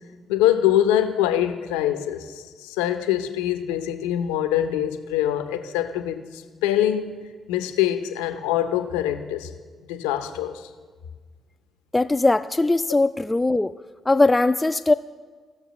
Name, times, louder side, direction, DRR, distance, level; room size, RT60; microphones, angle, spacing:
voice 1, 0.3-2.3 2.6-7.1 7.5-9.5 9.9-10.6, left 11 dB, 85° left, 9 dB, 0.6 m, -24 dB
voice 2, 11.9-13.8 14.1-14.9, left 2 dB, 20° left, 8 dB, 0.3 m, -20 dB
17.5 x 6.6 x 3.0 m, 1.5 s
hypercardioid pair, 45°, 0 cm